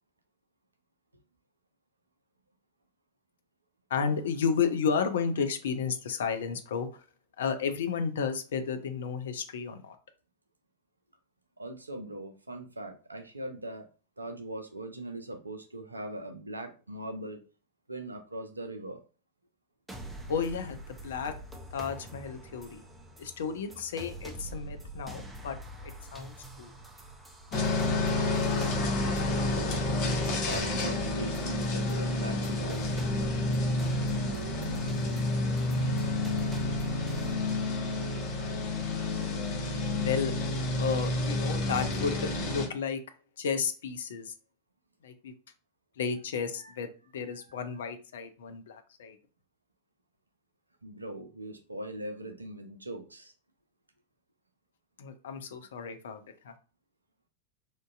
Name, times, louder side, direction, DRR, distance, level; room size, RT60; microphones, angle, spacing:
voice 1, 3.9-7.0 7.4-10.0 20.3-21.4 21.7-22.8 23.2-25.6 25.8-26.7 40.0-40.3 40.8-43.0 43.4-44.3 45.0-45.3 46.0-49.2 55.0-56.5, left 6 dB, 60° left, 0.5 m, -32 dB
voice 2, 11.6-13.9 14.2-17.4 17.9-19.0 29.2-29.9 30.2-33.1 46.5-46.8 47.3-47.5 50.8-53.3, right 1 dB, 80° right, 0.5 m, -40 dB
sound 1, 19.9-37.3, right 1 dB, 5° right, 0.6 m, -44 dB
sound 2, 27.5-42.7, left 2 dB, 45° left, 0.9 m, -29 dB
3.6 x 2.6 x 2.4 m
figure-of-eight pair, 90°, 0 cm